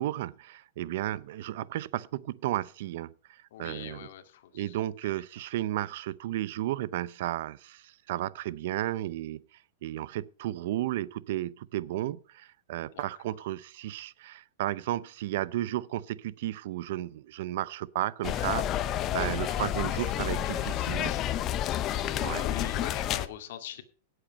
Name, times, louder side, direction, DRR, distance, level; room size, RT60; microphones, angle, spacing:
voice 1, 0.0-4.1 4.5-9.4 9.8-21.1 22.2-22.4, right 14 dB, 55° right, 0.5 m, -33 dB
voice 2, 3.5-4.8 5.0-5.1 12.9-13.1 19.2-19.4 20.0-21.5 21.9-23.8, left 11 dB, 60° left, 2.2 m, -44 dB
sound 1, 18.2-23.3, left 11 dB, 25° left, 0.7 m, -30 dB
17.5 x 8.0 x 5.2 m
supercardioid pair, 165°, 0 cm